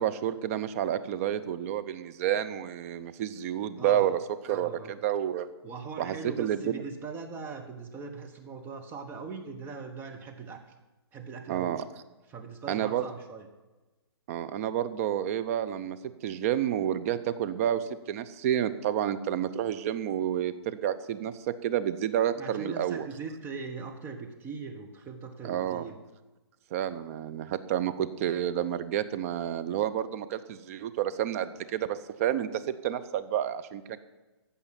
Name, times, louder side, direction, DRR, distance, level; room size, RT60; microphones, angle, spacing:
voice 1, 0.0-4.2 4.5-5.5 6.0-6.8 11.5-11.8 12.7-13.0 14.3-16.0 16.2-21.3 21.6-23.1 25.4-25.9 26.7-34.0, right 10 dB, 35° right, 12 dB, 0.7 m, -30 dB
voice 2, 3.8-4.1 4.5-4.9 5.6-10.6 11.1-11.8 12.3-13.5 22.4-26.0, right 4 dB, 15° right, 4 dB, 1.1 m, -40 dB
15.0 x 5.6 x 8.7 m, 1.1 s
hypercardioid pair, 150°, 14 cm